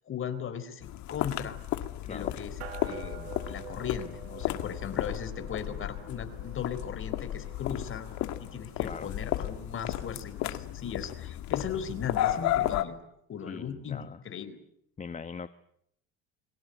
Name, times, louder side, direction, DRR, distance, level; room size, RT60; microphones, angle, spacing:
voice 1, 0.1-1.6 2.1-8.1 8.4-13.0 13.3-14.6, left 7 dB, 40° left, 11 dB, 4.1 m, -38 dB
sound 1, 0.8-12.8, left 13 dB, 65° left, 2.1 m, -33 dB
sound 2, 2.6-10.3, right 11 dB, 90° right, 3.7 m, -49 dB
voice 2, 13.5-14.2 15.0-15.5, left 5 dB, 25° left, 11 dB, 1.1 m, -41 dB
29.0 x 23.0 x 8.0 m, 0.73 s
supercardioid pair, 100°, 30 cm